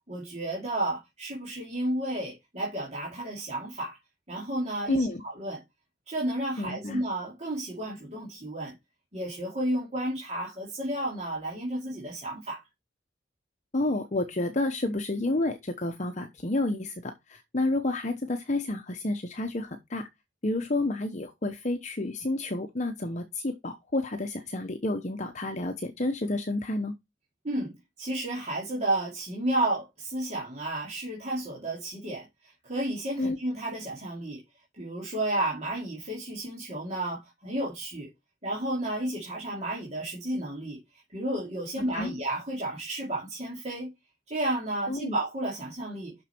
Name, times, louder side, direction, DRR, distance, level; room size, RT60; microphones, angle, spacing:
voice 1, 0.1-4.0 4.3-5.6 6.1-8.7 9.1-12.6 27.4-32.3 32.6-34.4 34.7-38.1 38.4-40.8 41.1-43.9 44.3-46.2, right 1 dB, 40° right, 2.5 m, -32 dB
voice 2, 4.9-5.2 6.6-7.0 13.7-20.1 20.4-26.9 33.2-33.4 41.8-42.1 44.9-45.2, left 2 dB, 40° left, 0.9 m, -30 dB
6.7 x 6.1 x 4.4 m
head